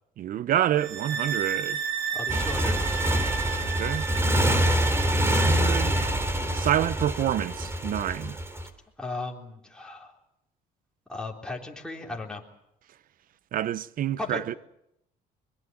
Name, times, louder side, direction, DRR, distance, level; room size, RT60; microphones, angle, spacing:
voice 1, 0.2-1.8 3.6-4.1 5.1-5.9 6.5-8.4 13.5-14.5, right 11 dB, 55° right, 0.8 m, -28 dB
sound 1, 0.8-6.2, right 8 dB, 75° right, 2.2 m, -33 dB
voice 2, 2.1-2.8 9.0-10.1 11.1-12.4 14.2-14.4, left 3 dB, 5° left, 3.7 m, -36 dB
Motorcycle, 2.3-8.7, equal, 15° right, 3.2 m, -25 dB
23.0 x 22.0 x 7.4 m
cardioid pair, 110°, 17 cm